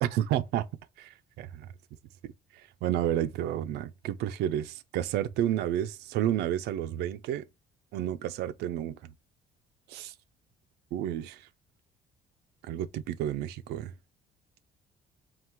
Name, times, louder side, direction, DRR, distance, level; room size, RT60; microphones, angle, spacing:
voice 1, 0.0-0.7 1.0-1.7 2.2-2.3 2.8-7.5 7.9-9.1 9.9-10.1 10.9-11.4 12.7-13.9, right 11 dB, 80° right, 0.5 m, -31 dB
3.8 x 2.4 x 4.4 m
cardioid pair, 110°, 17 cm